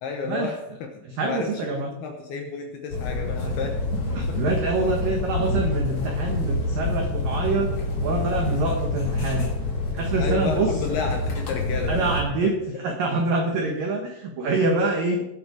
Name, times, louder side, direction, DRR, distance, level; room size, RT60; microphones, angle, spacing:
voice 1, 0.0-3.8 4.3-4.4 10.2-12.1, left 5 dB, 70° left, 3 dB, 2.5 m, -31 dB
voice 2, 1.1-1.9 4.2-7.7 8.0-9.5 9.9-10.7 11.9-15.3, right 3 dB, 75° right, 3 dB, 2.0 m, -25 dB
sound 1, 2.9-12.2, left 2 dB, 40° left, 2.5 m, -27 dB
19.0 x 7.9 x 4.9 m, 0.91 s
omnidirectional pair, 5.9 m